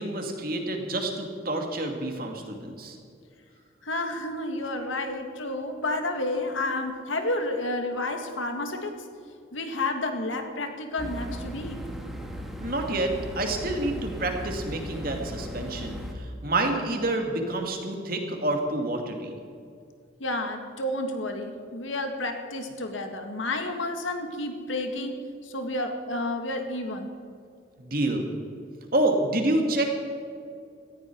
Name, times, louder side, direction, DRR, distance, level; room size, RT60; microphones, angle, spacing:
voice 1, 0.0-3.0 12.6-19.3 27.8-28.3 28.9-29.8, right 1 dB, 50° right, 3 dB, 2.3 m, -28 dB
voice 2, 3.8-9.0 9.5-11.8 20.2-25.2 25.4-27.1, left 2 dB, 85° left, 5 dB, 2.0 m, -30 dB
sound 1, 11.0-16.1, equal, ahead, 1.5 m, -37 dB
18.5 x 14.5 x 4.7 m, 2.4 s
head